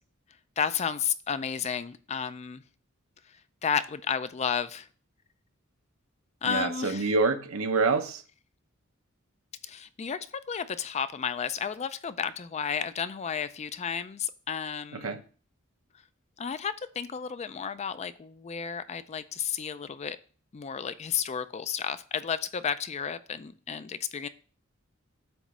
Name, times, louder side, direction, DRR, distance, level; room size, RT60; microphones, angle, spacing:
voice 1, 0.6-2.6 3.3-3.4 3.6-4.9 6.4-7.1 9.6-15.2 16.4-20.2 20.5-24.3, left 7 dB, 30° left, 0.4 m, -32 dB
voice 2, 6.4-8.2 14.9-15.2, right 4 dB, 85° right, 0.8 m, -27 dB
7.9 x 3.1 x 6.0 m
head